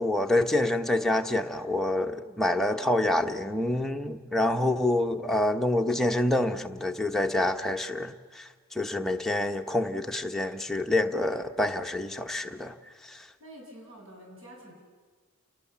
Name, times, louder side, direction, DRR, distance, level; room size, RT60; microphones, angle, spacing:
voice 1, 0.0-12.7 13.0-13.2, left 1 dB, ahead, 3 dB, 0.9 m, -27 dB
voice 2, 2.6-3.0 13.4-14.7, equal, 80° right, -1 dB, 7.8 m, -48 dB
29.5 x 19.0 x 7.0 m, 1.5 s
head